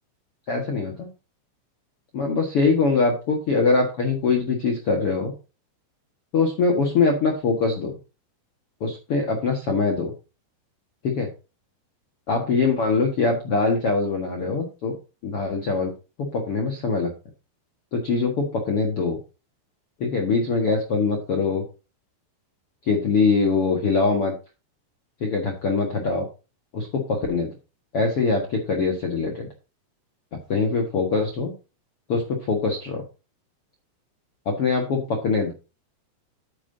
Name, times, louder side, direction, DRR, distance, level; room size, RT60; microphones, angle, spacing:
voice 1, 0.5-1.1 2.1-5.3 6.3-7.9 8.8-10.1 11.0-11.3 12.3-14.9 15.2-15.9 16.3-17.1 17.9-19.2 20.0-21.6 22.9-24.3 25.2-26.3 26.7-27.5 27.9-29.5 30.5-31.5 32.1-33.0 34.4-35.5, left 4 dB, 65° left, 2 dB, 1.4 m, -23 dB
9.8 x 9.2 x 2.8 m, 0.29 s
omnidirectional pair, 5.3 m